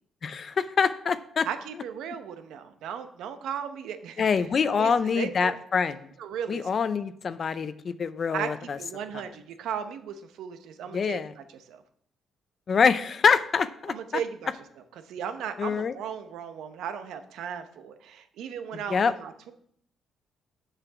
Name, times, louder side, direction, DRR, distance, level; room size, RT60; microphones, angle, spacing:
voice 1, 0.2-1.5 4.2-6.1 6.5-8.8 10.9-11.3 12.7-14.2 15.6-15.9 18.9-19.1, left 6 dB, 45° left, 13 dB, 0.5 m, -25 dB
voice 2, 1.4-4.2 4.7-5.6 6.2-6.7 8.3-11.8 13.9-14.5 15.0-19.5, right 8 dB, 85° right, 9 dB, 0.7 m, -36 dB
6.7 x 5.7 x 5.9 m, 0.67 s
cardioid pair, 90°, 0 cm